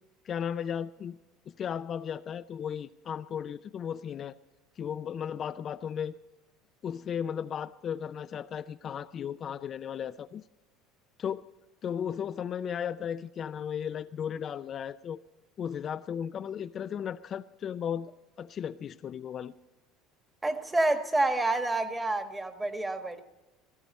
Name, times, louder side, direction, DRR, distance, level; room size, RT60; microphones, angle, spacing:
voice 1, 0.2-1.2 1.5-4.4 4.8-6.2 6.8-10.4 11.2-11.5 11.8-15.2 15.6-19.5, left 8 dB, 40° left, 0.4 m, -35 dB
voice 2, 20.4-23.2, right 2 dB, 10° right, 1.3 m, -28 dB
17.5 x 15.5 x 4.2 m
supercardioid pair, 105°, 0 cm